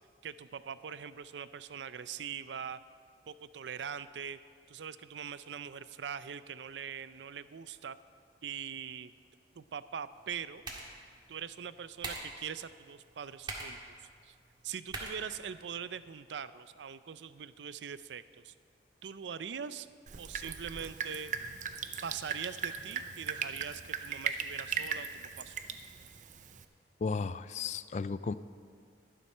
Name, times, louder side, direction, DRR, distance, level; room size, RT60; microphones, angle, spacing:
voice 1, 0.2-2.8 3.3-4.4 4.7-8.0 8.4-9.1 9.6-10.6 11.3-14.0 14.2-14.4 14.6-18.5 19.0-19.9 20.2-21.3 22.0-25.6, right 7 dB, 90° right, 14 dB, 0.5 m, -42 dB
sound 1, 10.1-16.1, right 2 dB, 25° right, 1.7 m, -46 dB
Drip, 20.1-26.6, right 6 dB, 45° right, 0.6 m, -38 dB
voice 2, 27.0-28.3, left 4 dB, 40° left, 15 dB, 0.3 m, -34 dB
11.5 x 11.5 x 5.5 m, 2.2 s
head